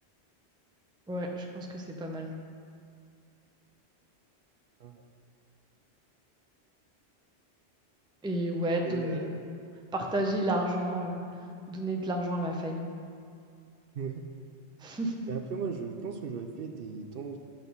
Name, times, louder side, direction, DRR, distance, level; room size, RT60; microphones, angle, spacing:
voice 1, 1.1-2.3 8.2-9.3 9.9-11.2 11.7-12.9 14.8-15.3, right 1 dB, 5° right, 1 dB, 0.5 m, -31 dB
voice 2, 8.8-9.4 13.9-14.2 15.3-17.4, right 5 dB, 65° right, 5 dB, 0.8 m, -37 dB
9.3 x 4.1 x 6.9 m, 2.4 s
omnidirectional pair, 1.1 m